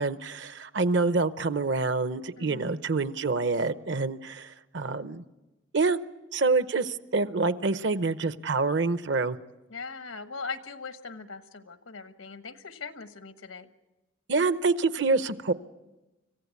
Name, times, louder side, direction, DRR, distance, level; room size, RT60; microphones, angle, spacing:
voice 1, 0.0-5.2 5.7-6.0 6.3-9.4 14.3-15.5, right 3 dB, 60° right, 14 dB, 0.7 m, -26 dB
voice 2, 2.4-2.7 9.7-13.7, left 4 dB, 90° left, 10 dB, 1.3 m, -40 dB
25.5 x 15.5 x 8.4 m, 1.1 s
head